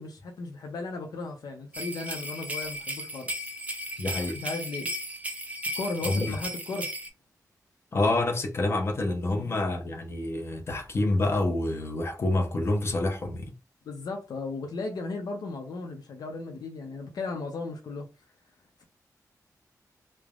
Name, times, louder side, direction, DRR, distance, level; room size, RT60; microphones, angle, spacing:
voice 1, 0.0-3.3 4.3-4.9 5.8-6.9 9.2-9.6 13.9-18.1, left 3 dB, 90° left, 0.5 m, -36 dB
sound 1, 1.7-7.1, equal, 20° right, 0.5 m, -35 dB
voice 2, 4.0-4.4 6.0-6.4 7.9-13.5, left 2 dB, 40° left, 0.6 m, -27 dB
3.2 x 2.0 x 2.3 m
wide cardioid pair, 165°, 7 cm